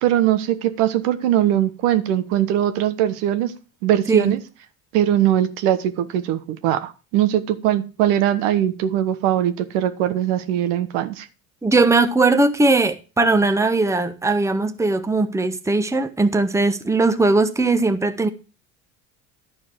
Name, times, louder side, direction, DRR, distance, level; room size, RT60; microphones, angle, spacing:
voice 1, 0.0-3.5 3.8-4.4 4.9-11.3, right 11 dB, 70° right, 1.3 m, -21 dB
voice 2, 11.6-18.3, right 3 dB, 5° right, 1.1 m, -19 dB
11.5 x 4.7 x 7.5 m
hypercardioid pair, 70°, 40 cm